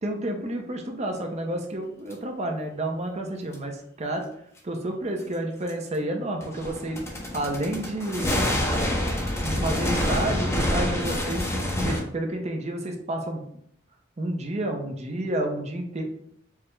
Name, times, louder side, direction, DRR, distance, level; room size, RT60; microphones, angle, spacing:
voice 1, 0.0-4.3 4.6-7.0 7.3-8.5 9.4-11.5 11.8-13.5 14.2-16.0, right 1 dB, 35° right, 3 dB, 0.6 m, -30 dB
sound 1, 2.1-2.2 3.5-3.6 5.7-5.8 6.4-12.0, left 1 dB, 15° left, 0.7 m, -27 dB
4.8 x 2.1 x 3.3 m, 0.68 s
head